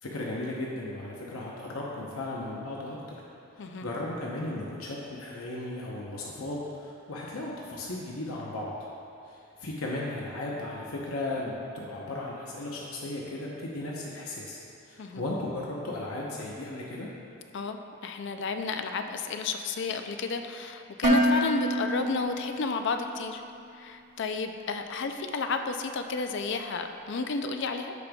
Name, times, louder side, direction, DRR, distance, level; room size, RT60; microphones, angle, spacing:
voice 1, 0.0-3.2 3.6-8.7 9.2-14.6 14.9-17.1, left 2 dB, 85° left, -4 dB, 0.9 m, -36 dB
voice 2, 17.5-23.4 23.8-27.9, left 4 dB, 60° left, 6 dB, 0.5 m, -32 dB
Dishes pots and pans, 21.0-23.1, equal, 40° right, 1.0 m, -26 dB
14.5 x 5.2 x 2.3 m, 2.6 s
head